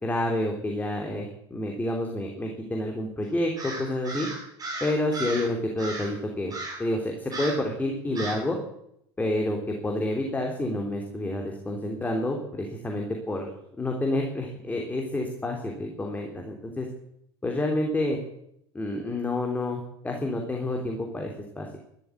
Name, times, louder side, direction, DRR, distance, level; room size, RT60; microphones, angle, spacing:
voice 1, 0.0-4.3 4.8-6.5 6.8-8.6 9.2-13.5 13.8-16.9 17.4-18.2 18.7-21.8, left 1 dB, 10° left, 1 dB, 3.2 m, -29 dB
Crow, 3.6-5.5 5.8-6.2 6.5-6.9 7.3-7.7 8.2-8.5, right 2 dB, 30° right, 7.4 m, -35 dB
13.0 x 12.5 x 8.5 m, 0.75 s
figure-of-eight pair, 75°, 13 cm